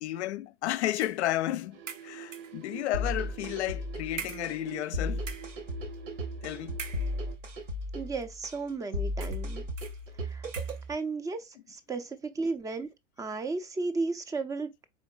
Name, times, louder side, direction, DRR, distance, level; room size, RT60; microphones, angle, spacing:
voice 1, 0.0-5.2 6.4-6.8, left 14 dB, 65° left, 0.5 m, -32 dB
sound 1, 1.0-1.3 1.9-2.6 3.4-3.6 4.2-4.9 5.2-5.6 6.7-7.5 8.2-8.3 9.2-9.5 9.8-10.0 10.5-10.9, right 6 dB, 90° right, 0.6 m, -43 dB
sound 2, 1.7-7.4, right 9 dB, 50° right, 0.9 m, -47 dB
sound 3, 2.9-10.9, left 1 dB, 75° right, 1.5 m, -35 dB
voice 2, 7.9-9.6 10.3-10.5 10.9-12.9 13.2-14.9, right 3 dB, 10° right, 0.4 m, -34 dB
4.3 x 3.7 x 2.3 m
figure-of-eight pair, 90°, 37 cm